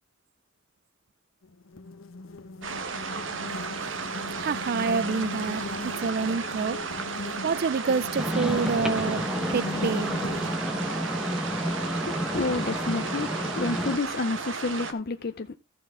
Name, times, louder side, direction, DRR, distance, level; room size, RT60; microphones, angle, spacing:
sound 1, 1.4-10.6, left 2 dB, 85° left, 1.0 m, -39 dB
sound 2, 2.6-14.9, right 5 dB, 70° right, 1.3 m, -34 dB
voice 1, 4.4-6.8 7.4-9.3 9.5-10.1, right 5 dB, 50° right, 0.4 m, -27 dB
sound 3, 8.2-14.0, equal, 5° right, 1.1 m, -30 dB
voice 2, 12.0-15.6, left 3 dB, 50° left, 0.6 m, -30 dB
14.5 x 6.1 x 3.7 m
head